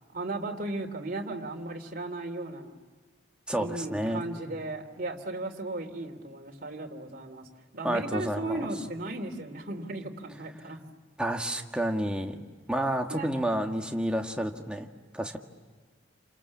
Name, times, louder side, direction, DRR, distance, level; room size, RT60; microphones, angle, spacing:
voice 1, 0.1-2.8 3.6-7.5 7.7-10.8 13.1-13.3, right 2 dB, 50° right, 2 dB, 3.0 m, -36 dB
voice 2, 3.5-4.3 7.8-8.7 11.2-12.4 12.7-14.9 15.1-15.4, right 1 dB, 5° right, 2 dB, 1.8 m, -30 dB
30.0 x 27.5 x 7.3 m, 1.4 s
head